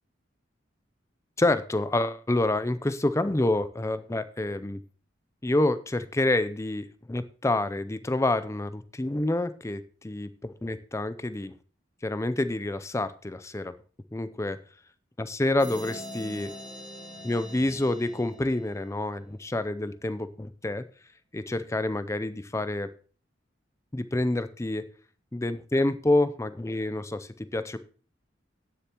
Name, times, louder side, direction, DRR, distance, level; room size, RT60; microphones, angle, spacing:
voice 1, 1.4-4.8 5.4-11.6 12.0-13.7 14.1-14.6 15.2-16.5 17.2-20.8 21.3-22.9 23.9-24.9 25.3-27.8, left 2 dB, 15° left, 13 dB, 0.5 m, -28 dB
sound 1, 15.6-19.2, equal, 5° right, 2.1 m, -43 dB
17.0 x 6.8 x 2.9 m, 0.39 s
head